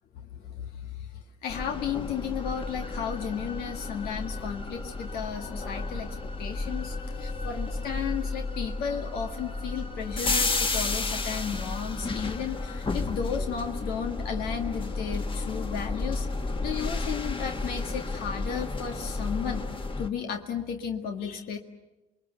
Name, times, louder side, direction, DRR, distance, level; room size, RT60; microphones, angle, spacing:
voice 1, 0.1-16.3 16.6-19.6 20.0-21.6, left 7 dB, 90° left, 3 dB, 1.9 m, -34 dB
sound 1, 1.5-20.1, left 3 dB, 35° left, 1.9 m, -32 dB
28.0 x 21.5 x 8.0 m, 1.0 s
cardioid pair, 75°, 15 cm